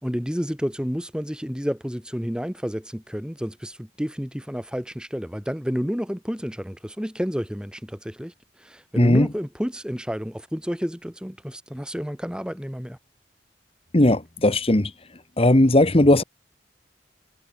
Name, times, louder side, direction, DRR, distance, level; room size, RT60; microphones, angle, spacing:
voice 1, 0.0-8.3 8.6-13.0, equal, 5° right, 2.6 m, -30 dB
voice 2, 9.0-9.3 13.9-14.9 15.4-16.2, left 1 dB, 35° left, 1.4 m, -17 dB
head